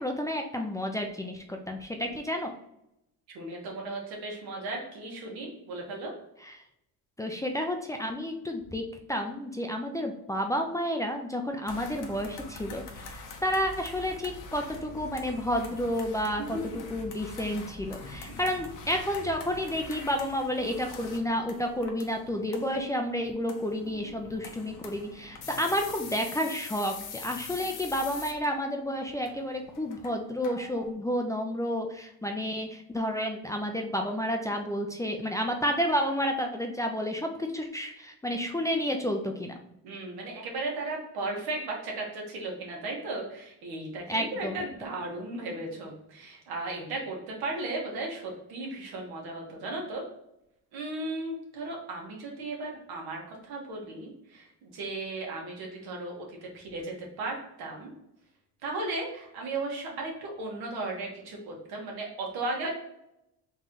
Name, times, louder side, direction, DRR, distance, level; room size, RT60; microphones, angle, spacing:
voice 1, 0.0-2.5 5.4-5.5 6.4-6.5 7.2-39.6 44.1-44.6, equal, 10° left, 3 dB, 0.4 m, -31 dB
voice 2, 3.3-6.1 16.5-16.6 18.3-18.4 39.8-50.0 50.7-57.9 58.6-62.7, right 2 dB, 85° right, 0 dB, 1.5 m, -36 dB
sound 1, 11.7-30.9, left 4 dB, 55° left, 0.9 m, -44 dB
3.9 x 3.0 x 3.8 m, 0.81 s
cardioid pair, 125°, 37 cm